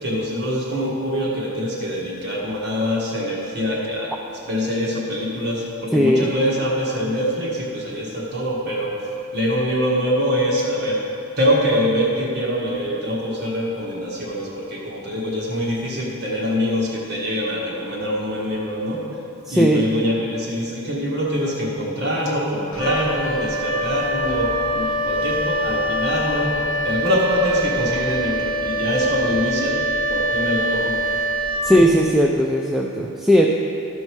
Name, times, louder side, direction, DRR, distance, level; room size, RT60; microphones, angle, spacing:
voice 1, 0.0-4.1 4.5-11.0 11.4-19.0 19.5-29.8 30.1-31.2 31.7-31.8, equal, 50° right, -4 dB, 1.5 m, -24 dB
voice 2, 5.9-6.3 19.4-19.9 31.6-33.5, equal, ahead, -1 dB, 0.3 m, -17 dB
Wind instrument woodwind instrument, 22.7-32.2, equal, 65° left, 0.7 m, -24 dB
13.0 x 5.5 x 4.6 m, 2.7 s
head